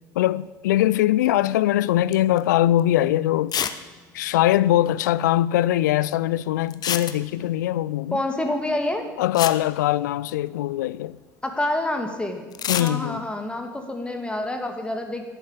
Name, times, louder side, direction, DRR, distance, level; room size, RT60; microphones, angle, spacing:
voice 1, 0.2-3.6 4.1-8.2 9.2-11.2 12.7-13.2, left 13 dB, 70° left, 0.4 m, -22 dB
sound 1, 2.1-2.4 2.8-2.9 3.5-3.8 4.1-4.2 4.4-4.5 6.7-7.5 8.9-9.0 9.3-10.6 12.5-13.0, left 9 dB, 45° left, 0.9 m, -28 dB
voice 2, 8.1-9.1 11.4-12.4 12.8-15.2, left 1 dB, 10° left, 2.4 m, -27 dB
11.0 x 9.5 x 9.1 m
figure-of-eight pair, 65°, 10 cm